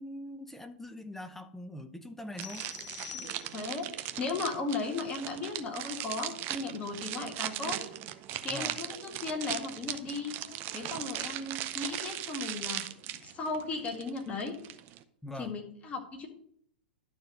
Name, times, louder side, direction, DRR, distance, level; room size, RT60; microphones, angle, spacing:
voice 1, 0.0-2.7 8.5-8.8 15.2-15.5, left 1 dB, 5° left, 10 dB, 0.7 m, -42 dB
sound 1, 2.4-3.9, left 10 dB, 45° left, 0.8 m, -46 dB
sound 2, 2.4-15.0, right 13 dB, 35° right, 0.7 m, -39 dB
voice 2, 3.5-7.8 8.4-10.4 10.7-12.8 13.2-14.6 15.3-16.3, left 3 dB, 25° left, 3 dB, 2.0 m, -36 dB
11.5 x 4.4 x 6.4 m, 0.64 s
figure-of-eight pair, 100°, 6 cm